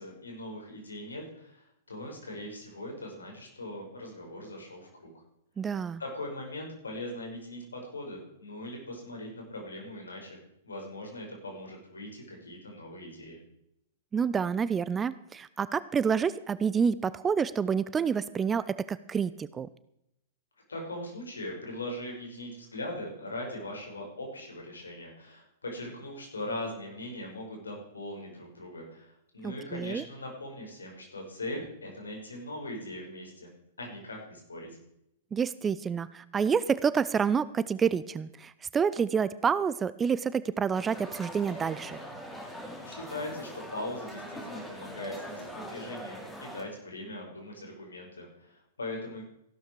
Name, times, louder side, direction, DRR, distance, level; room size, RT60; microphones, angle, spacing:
voice 1, 0.0-5.2 6.0-10.4 10.6-13.4 20.7-33.5 33.8-34.7 42.8-49.2, left 1 dB, 70° left, 1 dB, 5.7 m, -40 dB
voice 2, 5.6-6.0 14.1-19.7 29.4-30.0 35.3-42.0, right 6 dB, 15° right, 17 dB, 0.5 m, -28 dB
sound 1, 40.7-46.6, equal, 5° left, 3.2 m, -42 dB
15.0 x 12.5 x 4.8 m, 0.79 s
figure-of-eight pair, 105°, 0 cm